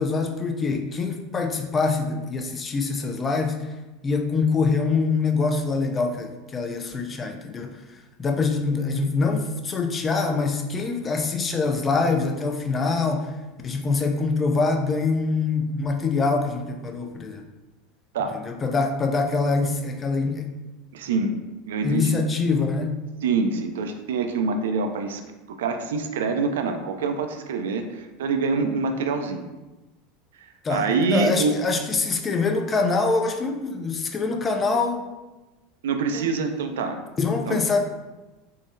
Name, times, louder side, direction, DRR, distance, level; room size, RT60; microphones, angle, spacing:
voice 1, 0.0-3.7 4.0-7.8 8.2-13.3 13.6-17.4 18.3-20.5 21.8-23.0 30.6-35.0 36.1-36.3 37.2-37.8, left 4 dB, 25° left, 4 dB, 0.4 m, -24 dB
voice 2, 20.9-21.3 21.7-22.2 23.2-25.2 25.6-29.5 30.7-31.5 35.8-37.0 37.5-37.6, right 4 dB, 80° right, 5 dB, 0.3 m, -25 dB
3.7 x 2.0 x 2.6 m, 1.1 s
hypercardioid pair, 100°, 0 cm